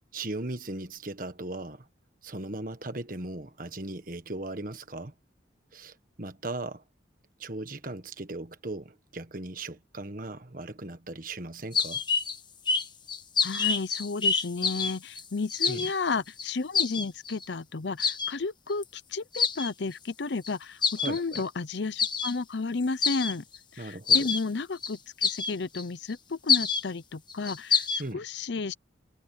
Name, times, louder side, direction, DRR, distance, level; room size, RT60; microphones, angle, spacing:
voice 1, 0.1-1.9 2.2-5.1 5.7-6.8 7.4-12.0 15.6-15.9 21.0-21.4 23.8-24.3 28.0-28.2, right 2 dB, 45° right, 1.5 m, -38 dB
sound 1, 11.7-12.4 12.7-15.2 15.5-15.9 16.4-16.5 16.7-17.4 18.0-18.3 18.8-18.9 19.3-19.7 20.4-20.5 20.8-21.4 22.0-22.3 22.8-23.6 24.1-24.4 24.8-24.9 25.2-25.8 26.1-26.2 26.5-26.8 27.3-28.0, left 5 dB, 25° left, 1.3 m, -26 dB
voice 2, 13.4-23.4 23.7-28.7, left 4 dB, 65° left, 0.7 m, -32 dB
head